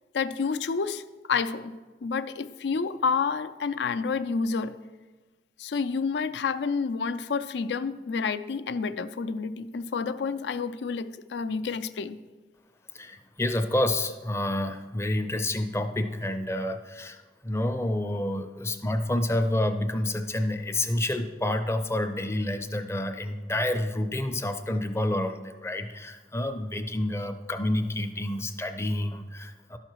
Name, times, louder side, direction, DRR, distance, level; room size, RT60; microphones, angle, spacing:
voice 1, 0.1-1.0 1.3-4.8 5.6-12.2, left 5 dB, 75° left, 0.4 m, -29 dB
voice 2, 12.9-29.8, left 1 dB, 15° left, 0.5 m, -29 dB
12.0 x 5.7 x 4.6 m
head